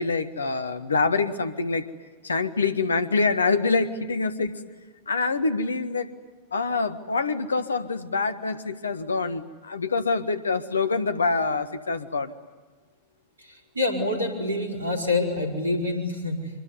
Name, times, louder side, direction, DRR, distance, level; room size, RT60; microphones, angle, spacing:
voice 1, 0.0-1.8 2.2-4.6 5.1-6.1 6.5-12.3, left 4 dB, 75° left, 12 dB, 1.6 m, -25 dB
voice 2, 13.4-16.5, left 2 dB, 75° right, 2 dB, 4.8 m, -27 dB
25.0 x 23.5 x 9.8 m, 1.4 s
figure-of-eight pair, 90°, 0 cm